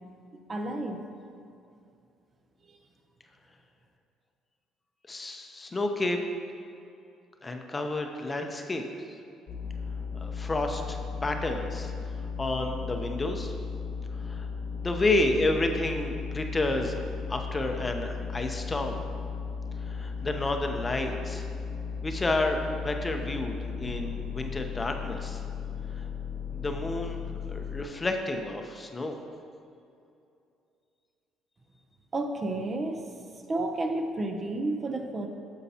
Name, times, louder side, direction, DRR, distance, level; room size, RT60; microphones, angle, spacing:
voice 1, 0.3-1.0 2.7-2.8 32.1-33.1 33.5-35.3, right 2 dB, 30° right, 4 dB, 0.6 m, -31 dB
voice 2, 5.1-6.2 7.4-9.1 10.1-11.9 12.4-13.5 14.2-14.5 14.7-17.0 17.3-19.0 19.8-21.5 22.0-25.4 25.9-26.0 26.5-27.2 27.5-29.2, left 2 dB, 20° left, 4 dB, 0.6 m, -30 dB
sound 1, 9.5-27.8, left 5 dB, 60° left, 1.1 m, -36 dB
9.5 x 7.0 x 2.8 m, 2.5 s
cardioid pair, 115°, 0 cm